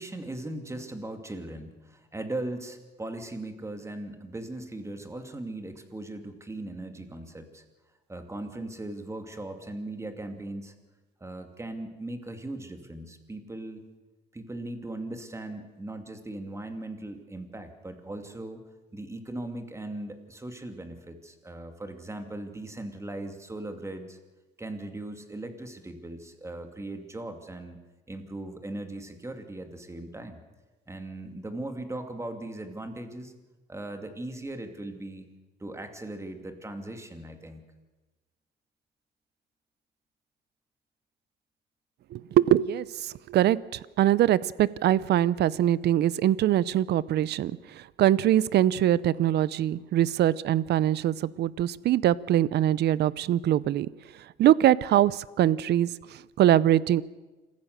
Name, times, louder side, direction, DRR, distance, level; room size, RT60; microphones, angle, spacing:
voice 1, 0.0-7.6 8.1-10.7 11.2-13.8 14.3-18.6 18.9-24.2 24.6-27.8 28.1-30.4 30.9-33.3 33.7-35.3 35.6-37.6, right 2 dB, 15° right, 6 dB, 2.6 m, -38 dB
voice 2, 42.1-53.9 54.4-57.0, right 12 dB, 65° right, 20 dB, 0.7 m, -23 dB
26.5 x 15.0 x 6.8 m, 1.2 s
cardioid pair, 105°, 19 cm